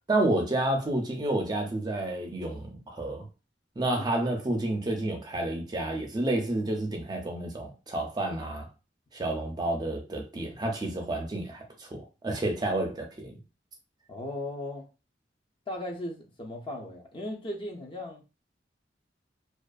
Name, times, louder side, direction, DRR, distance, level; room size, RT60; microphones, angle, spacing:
voice 1, 0.1-3.3 3.8-8.7 9.1-13.3, right 1 dB, 25° right, 0.5 m, -30 dB
voice 2, 14.1-14.9 15.7-18.2, left 1 dB, 30° left, 0.5 m, -37 dB
2.5 x 2.4 x 2.3 m
head